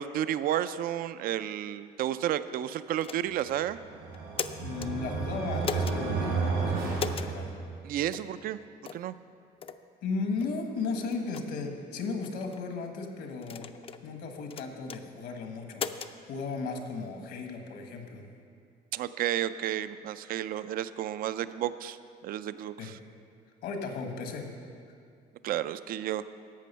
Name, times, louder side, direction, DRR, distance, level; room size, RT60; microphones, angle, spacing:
voice 1, 0.0-3.8 7.8-8.6 8.9-9.1 18.9-22.0 22.2-23.0 25.4-26.2, right 11 dB, 60° right, 14 dB, 0.4 m, -32 dB
sound 1, 3.0-3.5 4.1-4.9 5.6-6.0 7.0-7.3 8.1-8.3 8.8-9.1 9.6-9.8 10.4-10.5 11.1-11.4 12.2-12.6 13.4-14.0 14.5-15.0 15.7-16.1, left 6 dB, 35° left, 0.4 m, -37 dB
sound 2, 3.6-7.9, right 4 dB, 85° right, 3.1 m, -32 dB
voice 2, 4.6-7.5 10.0-13.7 14.0-15.9 16.3-18.3 22.8-22.9 23.6-24.5, left 4 dB, 75° left, 4 dB, 1.4 m, -35 dB
11.5 x 7.6 x 5.6 m, 2.3 s
cardioid pair, 110°, 17 cm